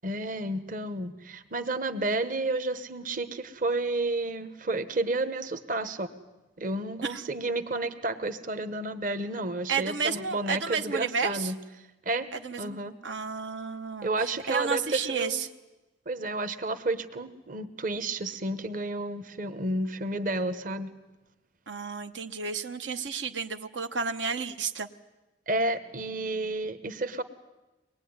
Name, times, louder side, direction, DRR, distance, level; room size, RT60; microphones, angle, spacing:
voice 1, 0.0-6.1 6.6-11.6 12.0-12.3 12.6-12.9 14.0-15.4 16.1-20.9 25.5-27.2, right 2 dB, 50° right, 11 dB, 1.1 m, -31 dB
voice 2, 9.7-11.5 12.3-12.8 13.0-14.1 14.5-15.5 21.7-24.9, right 5 dB, 85° right, 7 dB, 1.0 m, -31 dB
23.5 x 20.0 x 9.6 m, 1.1 s
head